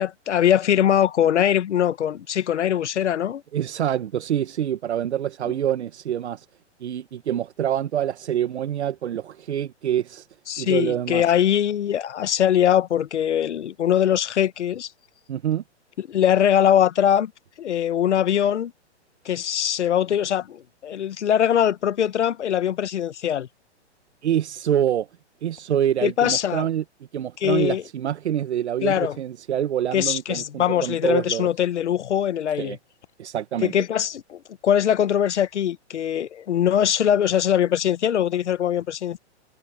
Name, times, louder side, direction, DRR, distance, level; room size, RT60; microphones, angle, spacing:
voice 1, 0.0-3.4 10.5-14.9 16.0-17.3 17.6-18.7 19.2-23.5 26.0-26.7 27.4-27.8 28.8-29.2 29.9-32.8 33.6-39.2, left 10 dB, 75° left, 1.3 m, -22 dB
voice 2, 3.5-6.4 6.8-10.3 10.6-11.2 15.3-15.6 24.2-25.1 25.4-26.8 27.1-31.5 32.6-32.8 33.2-33.7, right 10 dB, 70° right, 1.3 m, -26 dB
hypercardioid pair, 165°, 35 cm